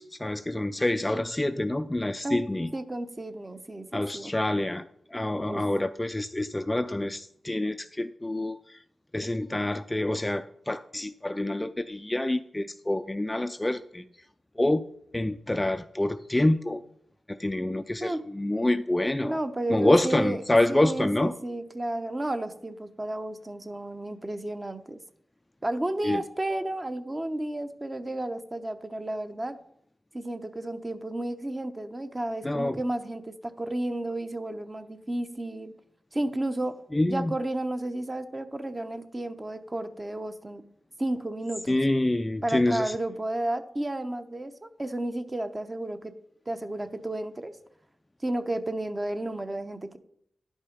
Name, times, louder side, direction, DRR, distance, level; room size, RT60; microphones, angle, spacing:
voice 1, 0.0-2.7 3.9-8.8 9.1-14.0 14.6-14.8 15.1-16.8 17.3-19.4 19.7-21.3 26.0-26.2 32.4-32.8 36.9-37.4 41.7-43.0, left 1 dB, 20° left, 10 dB, 0.4 m, -27 dB
voice 2, 2.7-4.3 5.5-5.6 18.0-18.2 19.2-20.4 20.7-25.0 25.6-29.6 30.1-35.7 36.1-36.8 37.1-40.6 41.0-41.8 42.4-46.1 46.5-47.6 48.2-50.0, right 1 dB, 25° right, 8 dB, 0.8 m, -32 dB
10.5 x 5.5 x 5.0 m, 0.70 s
cardioid pair, 65°, 0 cm